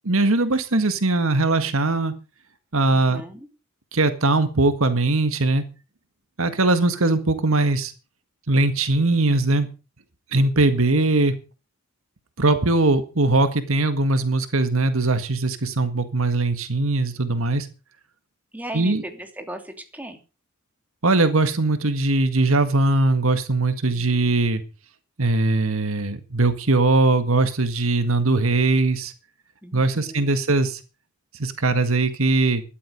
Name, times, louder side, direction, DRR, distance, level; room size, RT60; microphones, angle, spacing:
voice 1, 0.1-2.1 2.7-3.2 3.9-5.6 6.4-7.9 8.5-9.7 10.3-11.3 12.4-17.7 18.7-19.0 21.0-24.6 25.2-29.1 29.7-30.8 31.4-32.6, right 2 dB, 70° right, 10 dB, 1.8 m, -20 dB
voice 2, 2.9-3.5 18.5-20.2 29.6-30.4, right 1 dB, 5° right, 5 dB, 2.9 m, -38 dB
14.0 x 12.0 x 5.3 m, 0.32 s
head